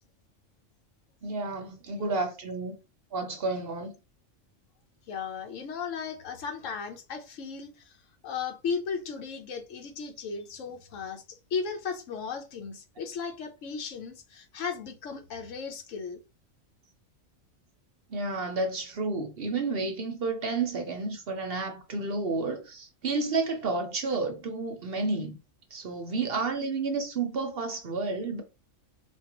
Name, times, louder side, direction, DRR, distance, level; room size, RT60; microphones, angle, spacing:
voice 1, 1.2-2.8 3.1-3.9 18.1-25.4 25.7-28.4, right 3 dB, 55° right, 0.8 m, -31 dB
voice 2, 5.1-7.7 8.2-16.2, left 5 dB, 75° left, 1.1 m, -36 dB
4.5 x 2.5 x 2.9 m
omnidirectional pair, 1.3 m